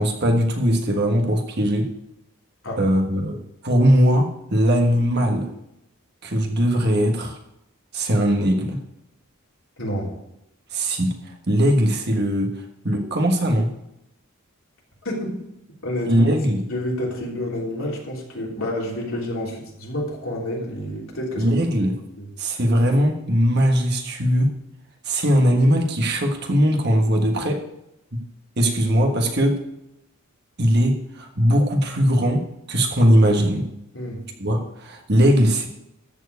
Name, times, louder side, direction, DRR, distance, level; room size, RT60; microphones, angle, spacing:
voice 1, 0.0-1.9 2.8-5.5 6.2-7.4 7.9-8.8 10.7-11.1 11.5-12.5 12.8-13.7 16.0-16.6 21.4-21.9 22.4-24.5 25.0-27.6 28.6-29.6 30.6-33.7 34.4-35.7, equal, 50° right, 2 dB, 1.4 m, -20 dB
voice 2, 9.8-10.1 15.0-15.4 15.8-16.3 16.7-21.5 22.2-22.3 33.9-34.2, left 1 dB, 65° left, -3 dB, 3.2 m, -29 dB
13.5 x 4.6 x 8.2 m, 0.84 s
head